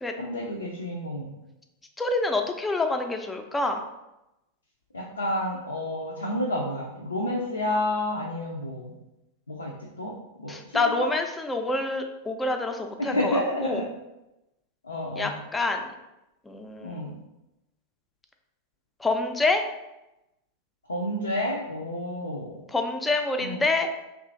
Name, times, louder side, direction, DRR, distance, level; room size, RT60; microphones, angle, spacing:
voice 1, 0.2-1.3 4.9-8.9 9.5-11.1 13.0-13.9 14.8-15.4 16.8-17.1 20.9-22.6 23.4-23.6, left 1 dB, 75° left, -2 dB, 0.5 m, -30 dB
voice 2, 2.0-3.9 10.5-13.9 15.2-15.9 16.5-17.1 19.0-19.7 22.7-23.9, left 2 dB, 10° left, 5 dB, 0.4 m, -27 dB
3.0 x 2.4 x 3.6 m, 0.93 s
figure-of-eight pair, 90°, 0 cm